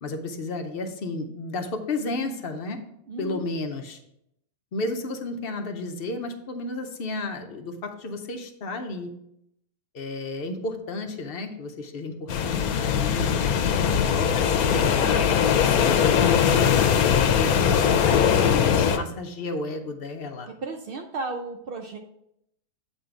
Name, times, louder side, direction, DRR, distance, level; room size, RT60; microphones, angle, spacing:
voice 1, 0.0-2.8 3.2-4.0 4.7-9.1 9.9-13.4 14.1-20.5, left 2 dB, 55° left, 5 dB, 0.7 m, -33 dB
voice 2, 3.1-3.5 20.6-22.0, right 3 dB, 75° right, 4 dB, 0.5 m, -34 dB
sound 1, 12.3-19.0, left 8 dB, 85° left, 1.1 m, -21 dB
7.9 x 3.9 x 4.4 m, 0.78 s
omnidirectional pair, 1.5 m